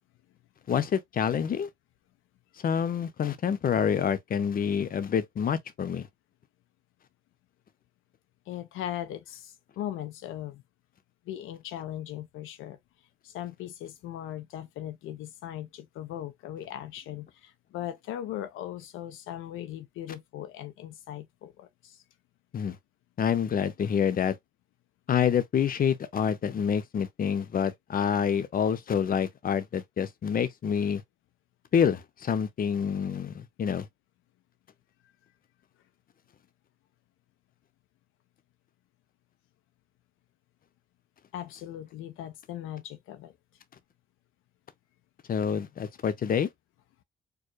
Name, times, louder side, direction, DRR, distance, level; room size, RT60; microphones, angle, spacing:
voice 1, 0.7-1.7 2.6-6.1 22.5-22.8 23.2-24.3 25.1-31.0 31.7-33.9 45.3-46.5, left 7 dB, 45° left, 0.8 m, -27 dB
voice 2, 8.5-10.6 11.3-12.8 13.2-22.0 41.3-43.3, left 12 dB, 85° left, 0.5 m, -39 dB
4.6 x 2.2 x 3.0 m
cardioid pair, 90°, 20 cm